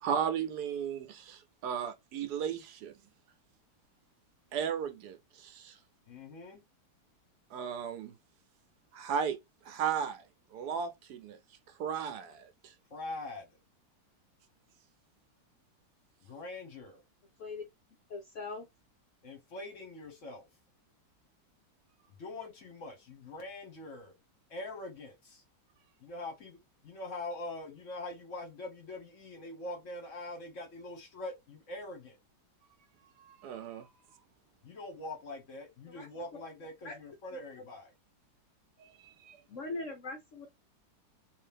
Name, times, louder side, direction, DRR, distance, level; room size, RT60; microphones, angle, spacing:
voice 1, 0.0-2.9 4.5-5.8 7.5-8.1 8.9-9.4 9.6-10.2 10.5-11.4 11.8-12.7 33.2-33.9 38.8-39.4, right 7 dB, 70° right, 1.1 m, -35 dB
voice 2, 6.1-6.6 12.9-13.5 16.2-17.0 19.2-20.5 22.2-24.1 24.5-25.4 26.0-26.6 26.8-32.2 34.6-37.9, left 2 dB, 55° left, 1.0 m, -43 dB
voice 3, 18.1-18.6 35.9-36.1 36.8-36.9 37.3-37.4 39.5-40.5, left 3 dB, 70° left, 0.7 m, -40 dB
3.3 x 2.7 x 3.3 m
omnidirectional pair, 2.0 m